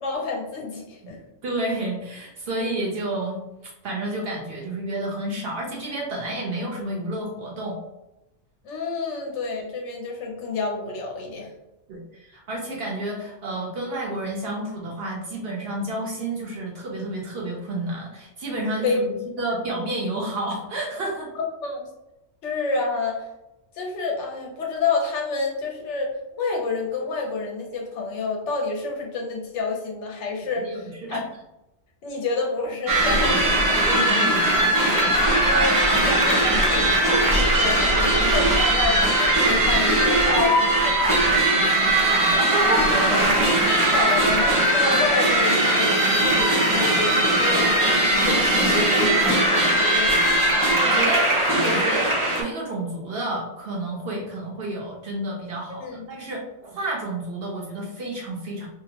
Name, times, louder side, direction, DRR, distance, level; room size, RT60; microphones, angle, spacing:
voice 1, 0.0-1.2 8.6-11.5 18.8-19.0 21.6-21.9 22.4-23.3 23.7-31.2 32.0-33.7 35.4-41.2 42.7-46.0 46.3-50.6 55.8-56.0, left 3 dB, 70° left, 0 dB, 0.9 m, -29 dB
voice 2, 1.4-3.4 3.8-7.8 11.9-21.3 30.5-31.2 33.8-34.6 41.5-43.1 50.8-51.3 51.5-58.7, right 2 dB, 65° right, -1 dB, 0.7 m, -30 dB
sound 1, 32.9-52.4, right 1 dB, 25° right, 0.4 m, -20 dB
2.7 x 2.0 x 2.8 m, 0.91 s
omnidirectional pair, 1.3 m